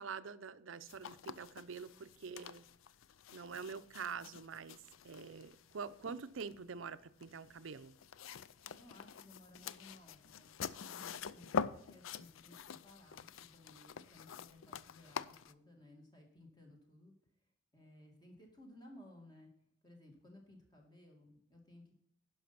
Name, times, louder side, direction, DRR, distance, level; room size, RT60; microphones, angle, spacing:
voice 1, 0.0-2.6 3.3-4.8 5.0-8.0, right 5 dB, 80° right, 0.6 m, -46 dB
sound 1, 0.9-15.5, left 6 dB, 85° left, 0.4 m, -46 dB
voice 2, 8.7-17.1 17.7-19.5 19.8-22.0, left 1 dB, 20° left, 2.3 m, -59 dB
11.0 x 5.6 x 5.9 m
head